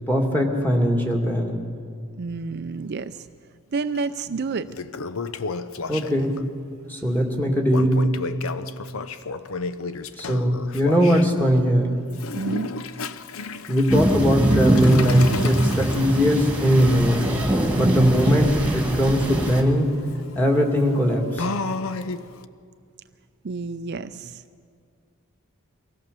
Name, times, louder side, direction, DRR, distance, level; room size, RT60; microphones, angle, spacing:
voice 1, 0.1-1.7 5.9-6.4 6.9-8.1 10.2-12.0 13.7-17.3 17.7-19.9 20.3-21.5, equal, 10° left, 0 dB, 2.3 m, -20 dB
voice 2, 2.2-3.1 3.7-4.7 12.3-12.7 17.7-18.1 23.4-24.4, right 4 dB, 50° right, 10 dB, 0.5 m, -29 dB
Toilet flush, 4.0-4.1 4.5-6.4 7.7-11.3 12.1-22.4, left 4 dB, 70° left, 0.7 m, -33 dB
sound 1, 13.9-19.6, right 1 dB, 5° right, 2.1 m, -23 dB
24.0 x 17.0 x 6.9 m, 2.2 s
head